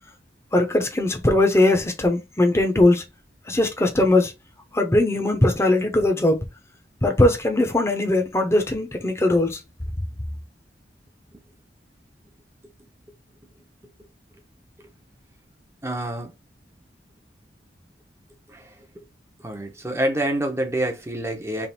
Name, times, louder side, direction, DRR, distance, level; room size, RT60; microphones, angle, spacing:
voice 1, 0.5-3.0 3.5-4.3 4.7-6.4 7.0-9.6, left 2 dB, 15° left, 1.0 m, -20 dB
voice 2, 15.8-16.3 18.5-19.0 19.4-21.7, right 1 dB, 15° right, 1.0 m, -27 dB
3.5 x 3.3 x 4.4 m
head